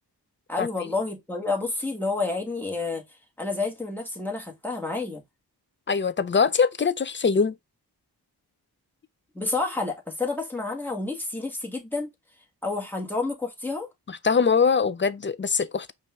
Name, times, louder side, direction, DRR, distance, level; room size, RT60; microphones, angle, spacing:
voice 1, 0.5-3.0 3.4-5.2 9.3-12.1 12.6-13.9, left 3 dB, 5° left, 1.8 m, -29 dB
voice 2, 5.9-7.5 14.1-15.9, left 5 dB, 30° left, 0.5 m, -22 dB
5.3 x 2.7 x 3.5 m
wide cardioid pair, 60°, 41 cm